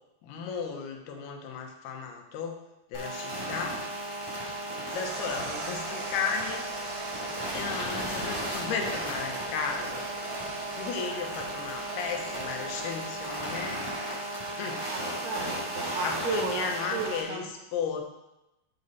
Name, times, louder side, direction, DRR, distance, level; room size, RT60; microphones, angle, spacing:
voice 1, 0.2-2.6 2.9-3.8 4.9-6.6 7.5-10.1 10.8-13.8 14.5-14.8 16.0-18.0, left 5 dB, 80° left, 2 dB, 2.9 m, -34 dB
sound 1, 2.9-17.2, right 1 dB, 10° right, 1.6 m, -35 dB
sound 2, 4.9-13.6, right 3 dB, 65° right, 2.2 m, -41 dB
voice 2, 14.9-17.5, right 5 dB, 80° right, 2 dB, 2.0 m, -35 dB
7.9 x 6.6 x 4.1 m, 0.94 s
omnidirectional pair, 4.7 m